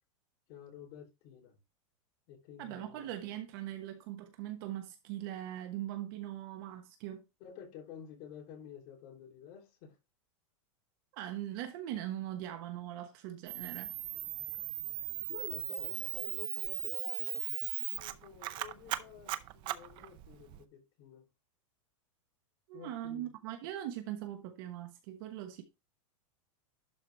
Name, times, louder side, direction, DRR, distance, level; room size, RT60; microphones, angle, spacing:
voice 1, 0.5-1.6 2.3-3.2 7.4-10.0 15.3-21.2 22.7-23.3, left 9 dB, 40° left, 3.4 m, -51 dB
voice 2, 2.6-7.2 11.1-13.9 22.7-25.6, right 12 dB, 45° right, 1.2 m, -41 dB
Camera, 13.5-20.6, right 16 dB, 30° right, 0.5 m, -38 dB
11.5 x 4.8 x 3.4 m
supercardioid pair, 170°, 17 cm